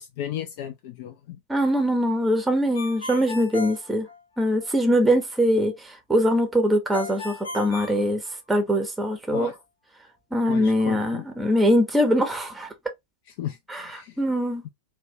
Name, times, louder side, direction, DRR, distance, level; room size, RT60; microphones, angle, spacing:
voice 1, 0.0-1.4 9.3-9.5 10.5-11.2 13.4-13.6 13.8-14.2, left 11 dB, 50° left, 0.4 m, -34 dB
voice 2, 1.5-4.1 4.4-8.2 8.5-9.5 10.3-12.7 13.7-14.6, equal, 10° right, 0.7 m, -22 dB
Ringtone, 2.7-4.7 6.9-8.8, left 3 dB, 75° left, 0.8 m, -37 dB
2.6 x 2.2 x 3.3 m
figure-of-eight pair, 90°, 0 cm